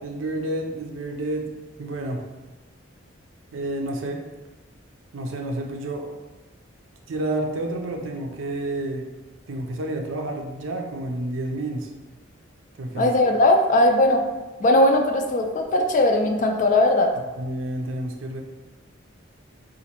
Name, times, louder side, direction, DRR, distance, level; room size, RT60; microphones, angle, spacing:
voice 1, 0.0-1.5 1.8-2.2 3.5-4.3 5.1-6.1 7.1-9.1 9.5-11.9 12.8-13.1 17.4-18.4, right 1 dB, 80° right, 3 dB, 0.5 m, -29 dB
voice 2, 13.0-14.2 14.6-17.1, left 1 dB, 40° left, 3 dB, 0.3 m, -19 dB
3.9 x 2.5 x 2.9 m, 1.1 s
head